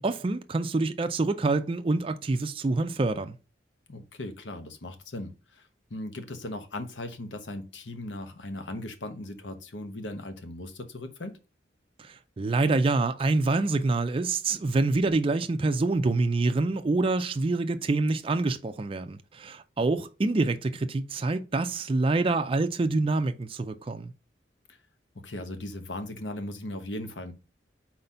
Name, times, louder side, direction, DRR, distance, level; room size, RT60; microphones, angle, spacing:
voice 1, 0.0-3.3 12.0-24.1, right 3 dB, 30° right, 0.4 m, -26 dB
voice 2, 3.9-11.4 25.1-27.3, left 1 dB, 85° left, 1.0 m, -38 dB
4.3 x 4.0 x 5.5 m
head